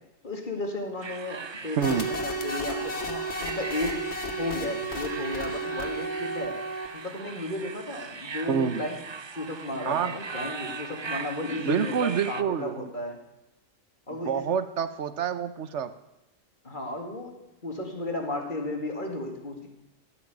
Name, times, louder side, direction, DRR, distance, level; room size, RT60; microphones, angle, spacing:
voice 1, 0.2-4.0 4.4-6.6 6.9-9.0 9.3-13.2 14.1-14.4 16.6-17.3 17.6-19.7, left 2 dB, 40° left, 2 dB, 2.3 m, -34 dB
sound 1, 1.0-12.4, right 5 dB, 45° right, 0.3 m, -39 dB
sound 2, 1.8-7.2, right 1 dB, 55° left, 1.7 m, -33 dB
voice 2, 1.8-2.1 8.5-8.8 9.8-10.1 11.6-12.9 14.1-15.9, right 7 dB, 65° right, 12 dB, 1.1 m, -27 dB
15.0 x 6.6 x 9.1 m, 0.97 s
omnidirectional pair, 1.3 m